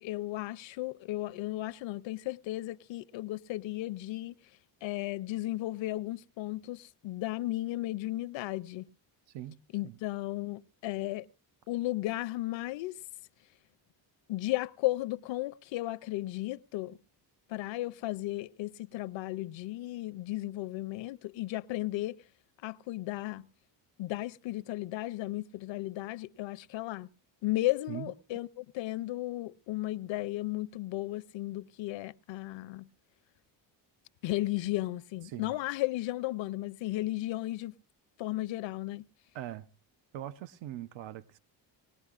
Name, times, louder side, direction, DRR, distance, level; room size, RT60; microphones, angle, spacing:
voice 1, 0.0-4.4 4.8-8.9 9.7-11.3 11.7-13.0 14.3-17.0 17.5-22.2 22.6-23.5 24.0-27.1 27.4-32.9 34.2-37.7 38.2-39.0, left 17 dB, 80° left, 0.6 m, -35 dB
voice 2, 9.3-9.6 9.8-10.0 27.9-28.1 35.2-35.6 39.3-39.7 40.1-41.4, right 13 dB, 75° right, 0.7 m, -41 dB
20.0 x 18.5 x 2.4 m
cardioid pair, 140°, 45 cm